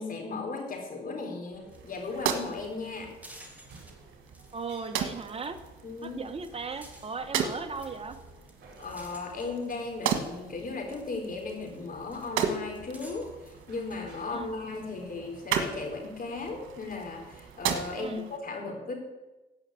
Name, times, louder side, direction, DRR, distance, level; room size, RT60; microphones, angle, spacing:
voice 1, 0.0-3.1 5.8-6.2 8.8-18.9, left 3 dB, 45° left, 2 dB, 4.1 m, -36 dB
sound 1, 1.5-18.1, right 3 dB, 55° right, 4.7 m, -53 dB
sound 2, 1.7-1.8 2.1-2.2 2.5-3.9 4.2-5.7 6.0-10.3 10.7-14.0, right 1 dB, 10° right, 2.7 m, -54 dB
sound 3, 1.7-18.4, right 7 dB, 85° right, 1.6 m, -37 dB
voice 2, 4.5-5.6 6.0-8.2 14.3-14.6 18.0-18.3, right 5 dB, 30° right, 7 dB, 1.4 m, -37 dB
15.5 x 5.8 x 8.7 m, 1.1 s
cardioid pair, 90°, 20 cm